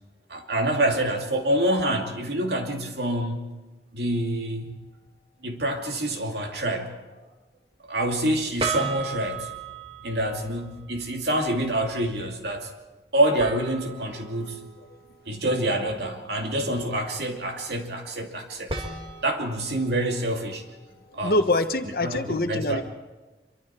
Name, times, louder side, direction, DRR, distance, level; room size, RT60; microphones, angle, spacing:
voice 1, 0.3-3.5 3.9-4.7 5.4-7.0 7.8-9.6 10.0-12.7 13.1-14.6 15.3-18.7 19.2-20.6 21.1-21.4 22.0-22.8, right 1 dB, 70° right, 3 dB, 2.5 m, -26 dB
sound 1, 4.1-4.3 8.6-11.0 13.4-15.9 18.7-21.8, right 4 dB, 30° right, 2.1 m, -36 dB
voice 2, 21.1-22.8, left 2 dB, 55° left, 8 dB, 1.2 m, -25 dB
25.5 x 24.0 x 4.4 m, 1.2 s
head